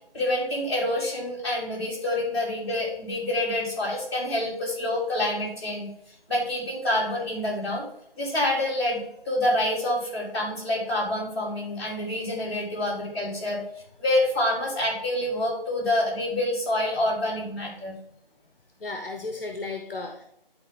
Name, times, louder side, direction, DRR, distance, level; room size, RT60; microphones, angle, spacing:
voice 1, 0.1-5.9 6.3-7.9 8.2-13.6 14.0-18.0, left 1 dB, 25° left, -7 dB, 3.5 m, -27 dB
voice 2, 18.8-20.2, left 3 dB, 65° left, 4 dB, 1.1 m, -34 dB
11.5 x 4.4 x 3.7 m, 0.76 s
figure-of-eight pair, 170°, 30 cm